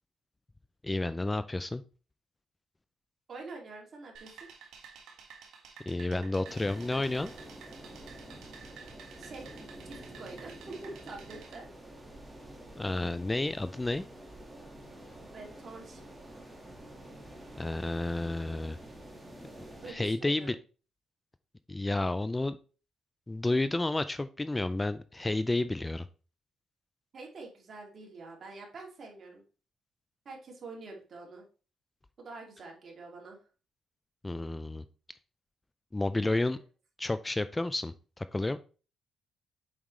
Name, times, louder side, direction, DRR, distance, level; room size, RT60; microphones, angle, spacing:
voice 1, 0.8-1.8 5.9-7.3 12.8-14.0 17.6-18.8 19.9-20.6 21.7-22.6 23.3-26.1 34.2-34.8 35.9-36.6 37.0-38.6, left 2 dB, 15° left, 13 dB, 0.3 m, -31 dB
voice 2, 3.3-4.5 9.2-9.5 9.8-11.7 15.3-16.0 19.8-20.6 27.1-29.4 30.2-31.4 32.2-33.4, right 3 dB, 50° right, 0 dB, 2.3 m, -46 dB
sound 1, 4.1-11.5, right 6 dB, 75° right, 1.7 m, -52 dB
sound 2, 6.5-19.9, right 1 dB, 10° right, 1.7 m, -48 dB
7.3 x 4.9 x 3.1 m, 0.36 s
cardioid pair, 90°, 0 cm